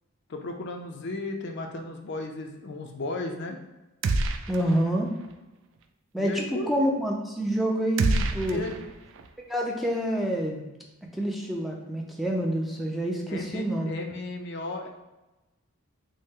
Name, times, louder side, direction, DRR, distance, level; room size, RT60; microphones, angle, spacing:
voice 1, 0.3-3.6 6.2-6.9 8.5-8.7 13.3-14.9, left 2 dB, 55° left, 4 dB, 0.5 m, -35 dB
sound 1, 4.0-4.9 5.2-5.3 8.0-9.3, right 3 dB, 60° right, 0.3 m, -27 dB
voice 2, 4.5-5.1 6.1-8.6 9.5-10.6 11.1-13.9, equal, ahead, -1 dB, 0.5 m, -27 dB
5.3 x 2.1 x 3.6 m, 1.0 s
head